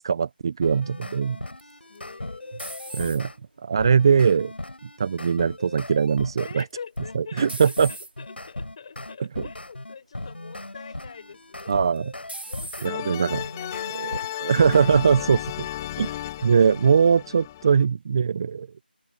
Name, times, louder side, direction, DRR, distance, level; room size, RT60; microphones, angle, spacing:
voice 1, 0.0-1.4 2.9-3.3 3.6-4.5 4.8-6.6 7.1-7.9 11.7-12.0 12.8-13.4 14.0-15.4 16.0-16.1 16.4-18.7, right 6 dB, 25° right, 0.5 m, -21 dB
sound 1, 0.6-3.4 3.8-6.5 7.0-12.9 13.3-15.3, left 2 dB, 90° left, 5.1 m, -38 dB
sound 2, 1.6-3.5 4.1-4.6 6.6-7.0 7.5-8.1 8.9-9.1 9.6-9.7 11.6-12.0 12.3-12.9, right 1 dB, 90° right, 3.3 m, -39 dB
voice 2, 1.9-3.1 6.4-11.8 12.5-15.2 15.6-16.9, left 6 dB, 35° left, 6.6 m, -45 dB
sound 3, 12.8-17.8, left 14 dB, 15° left, 1.9 m, -34 dB
figure-of-eight pair, 165°, 6 cm